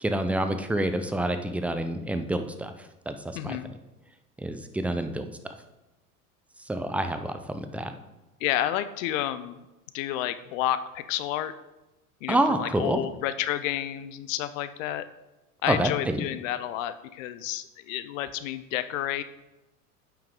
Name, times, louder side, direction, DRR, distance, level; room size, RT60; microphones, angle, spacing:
voice 1, 0.0-2.7 3.1-3.6 4.4-5.2 6.7-7.9 12.3-13.0 15.7-16.2, right 1 dB, 5° right, 8 dB, 0.5 m, -27 dB
voice 2, 3.3-3.7 8.4-9.6 9.9-11.5 12.2-15.1 15.6-19.2, left 12 dB, 60° left, 13 dB, 0.6 m, -30 dB
8.6 x 5.9 x 3.7 m, 1.0 s
hypercardioid pair, 80°, 45 cm